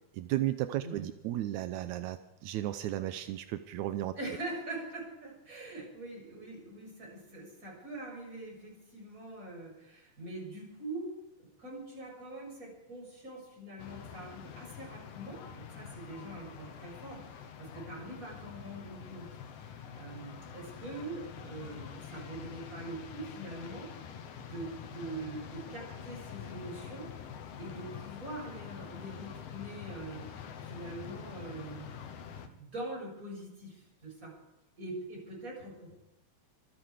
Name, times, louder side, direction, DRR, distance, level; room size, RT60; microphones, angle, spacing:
voice 1, 0.1-4.1, right 14 dB, 80° right, 10 dB, 1.8 m, -34 dB
voice 2, 4.2-11.2 11.6-19.3 19.6-23.9 24.5-27.1 27.6-30.3 30.6-31.9 32.4-34.3 34.8-36.0, right 2 dB, 20° right, -2 dB, 7.2 m, -43 dB
sound 1, 13.8-32.5, left 8 dB, 70° left, 3.0 m, -46 dB
25.5 x 10.0 x 4.9 m, 0.92 s
omnidirectional pair, 4.1 m